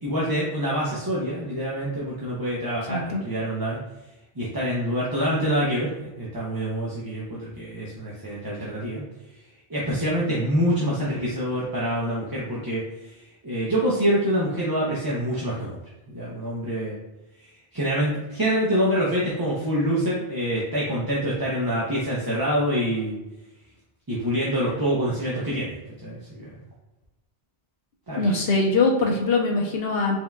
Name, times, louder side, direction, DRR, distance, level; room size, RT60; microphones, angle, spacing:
voice 1, 0.0-3.8 4.4-9.0 9.7-12.8 13.4-15.8 16.1-17.0 17.7-23.2 24.1-25.8 26.0-26.6 28.1-28.3, equal, 25° right, -6 dB, 0.6 m, -26 dB
voice 2, 2.9-3.2 28.1-30.2, left 3 dB, 70° left, 1 dB, 1.0 m, -22 dB
4.5 x 3.7 x 2.3 m, 1.0 s
omnidirectional pair, 1.0 m